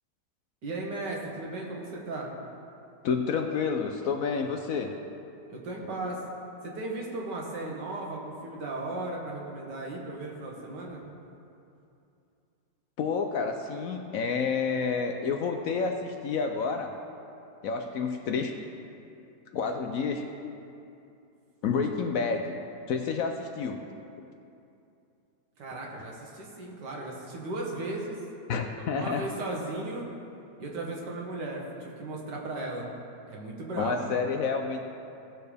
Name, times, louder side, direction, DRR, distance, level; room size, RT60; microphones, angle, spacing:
voice 1, 0.6-2.3 5.5-6.2 6.6-11.1 25.6-28.2 28.9-30.1 30.6-32.9 33.3-34.2, right 2 dB, 80° right, -2 dB, 2.1 m, -36 dB
voice 2, 3.0-4.9 13.0-16.9 17.6-18.6 19.5-20.4 21.6-22.6 22.9-23.8 24.2-24.3 28.5-29.2 33.8-34.8, left 5 dB, 65° left, 4 dB, 0.9 m, -29 dB
16.5 x 6.7 x 3.4 m, 2.6 s
omnidirectional pair, 1.8 m